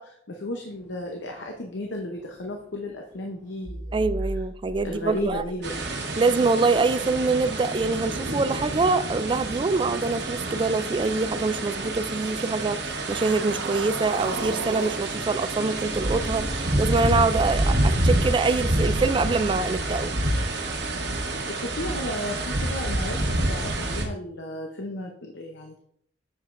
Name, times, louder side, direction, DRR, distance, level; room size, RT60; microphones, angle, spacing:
voice 1, 0.0-4.0 4.8-5.7 21.5-25.8, left 1 dB, 70° left, 0.8 m, -34 dB
sound 1, 0.7-13.4, equal, 5° left, 1.0 m, -42 dB
voice 2, 3.9-5.4 6.2-20.1, right 3 dB, 25° right, 0.3 m, -25 dB
sound 2, 5.6-24.0, right 1 dB, 60° right, 1.2 m, -28 dB
sound 3, 12.7-17.1, right 3 dB, 80° right, 0.7 m, -37 dB
7.4 x 7.3 x 2.6 m
head